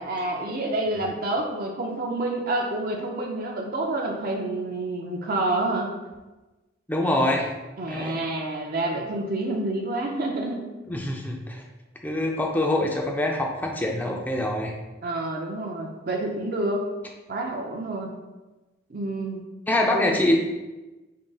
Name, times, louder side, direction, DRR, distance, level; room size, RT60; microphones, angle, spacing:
voice 1, 0.0-5.9 7.8-10.7 15.0-16.9 17.3-18.1 18.9-19.4 19.9-20.1, right 2 dB, 50° right, 0 dB, 0.5 m, -28 dB
voice 2, 6.9-7.5 7.9-8.2 10.9-11.6 12.0-14.7 19.7-20.4, left 1 dB, 10° left, 1 dB, 0.4 m, -24 dB
5.1 x 3.7 x 2.3 m, 1.1 s
head